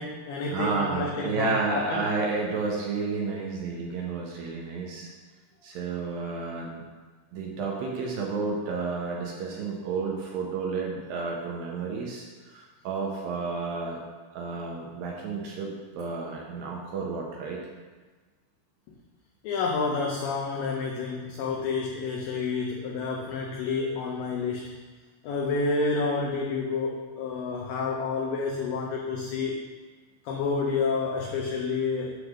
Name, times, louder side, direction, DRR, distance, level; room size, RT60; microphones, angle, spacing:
voice 1, 0.0-2.1 19.4-24.7 25.2-29.6 30.3-32.2, left 4 dB, 90° left, 0 dB, 1.9 m, -29 dB
voice 2, 0.5-5.1 5.6-6.8 7.3-14.0 14.3-17.6, right 4 dB, 75° right, -1 dB, 2.3 m, -31 dB
9.6 x 3.3 x 6.3 m, 1.3 s
omnidirectional pair, 4.8 m